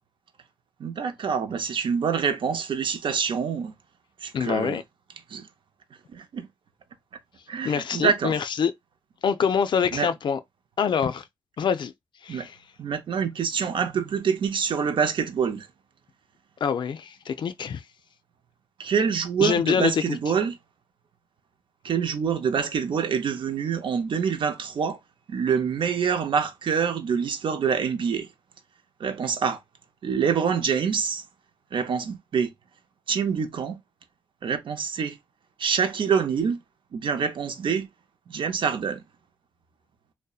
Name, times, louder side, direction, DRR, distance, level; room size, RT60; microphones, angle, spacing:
voice 1, 0.8-3.7 4.2-4.8 5.3-5.5 6.1-6.5 7.5-8.4 9.9-10.1 12.3-12.5 12.8-15.7 18.8-20.6 21.8-25.0 25.3-28.3 29.0-29.6 30.0-31.2 31.7-32.5 33.1-33.8 34.4-35.2 35.6-36.6 36.9-37.9 38.3-39.0, right 6 dB, 60° right, 0.5 m, -26 dB
voice 2, 4.3-4.8 7.6-8.7 9.2-10.4 10.8-11.3 11.6-11.9 12.2-12.6 16.6-17.8 19.4-20.2, left 7 dB, 55° left, 0.3 m, -25 dB
2.7 x 2.1 x 2.3 m
cardioid pair, 65°, 9 cm